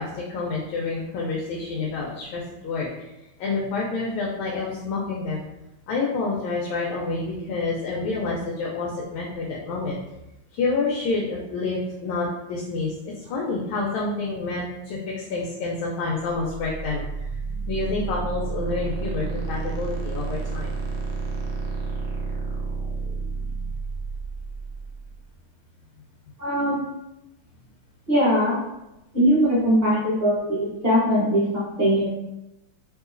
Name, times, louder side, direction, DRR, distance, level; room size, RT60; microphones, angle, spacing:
voice 1, 0.0-3.1 3.4-5.4 5.9-10.0 10.5-17.0 17.7-20.7, left 3 dB, 85° left, -3 dB, 1.4 m, -28 dB
sound 1, 16.3-25.1, right 4 dB, 70° right, 1.0 m, -30 dB
voice 2, 26.4-26.8 28.1-28.6 29.1-32.1, equal, 50° right, -8 dB, 0.7 m, -21 dB
3.8 x 2.7 x 2.5 m, 0.91 s
omnidirectional pair, 2.2 m